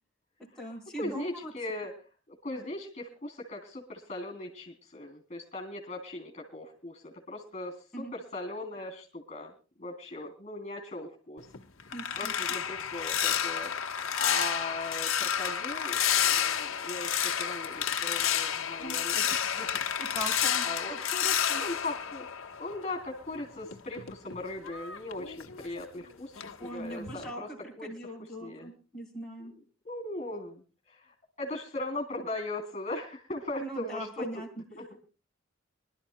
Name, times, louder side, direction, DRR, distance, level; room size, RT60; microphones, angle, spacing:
voice 1, 0.4-1.5 7.9-8.1 11.9-12.3 18.8-19.0 20.0-21.6 26.6-29.5 33.6-34.5, right 1 dB, 5° left, -3 dB, 4.0 m, -40 dB
voice 2, 1.0-1.9 2.3-9.5 9.8-11.5 12.2-19.7 20.6-21.0 21.6-22.2 22.6-27.5 27.8-28.1 28.4-28.7 29.8-30.6 30.9-31.0 31.4-34.4 34.7-34.8, left 2 dB, 35° left, 3 dB, 3.2 m, -39 dB
sound 1, 11.4-23.0 23.4-26.0 26.4-26.7 27.1-27.3, left 9 dB, 80° left, 1.3 m, -30 dB
25.5 x 12.5 x 2.2 m, 0.34 s
head